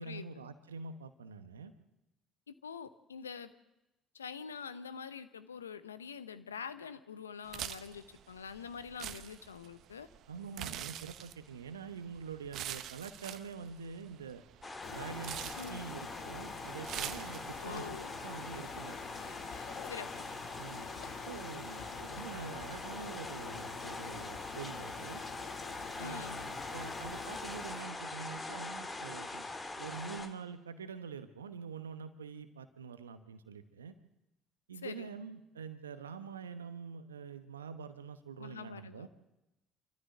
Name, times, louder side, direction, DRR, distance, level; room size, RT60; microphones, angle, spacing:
voice 1, 0.0-1.7 10.3-14.4 14.9-17.9 18.2-19.0 20.6-25.2 26.0-29.5 29.8-33.9 34.7-39.1, right 6 dB, 85° right, 10 dB, 1.0 m, -46 dB
voice 2, 2.5-3.5 4.1-10.1 15.6-15.9 17.6-18.1 19.8-20.3 26.0-26.4 34.8-35.1 38.4-39.1, left 6 dB, 90° left, 13 dB, 0.9 m, -45 dB
sound 1, 7.5-17.8, right 11 dB, 60° right, 1.0 m, -45 dB
sound 2, 14.6-30.3, left 2 dB, 25° left, 2.5 m, -43 dB
sound 3, 14.8-27.8, left 8 dB, 65° left, 1.8 m, -48 dB
27.0 x 14.0 x 7.8 m, 0.96 s
hypercardioid pair, 55°, 0 cm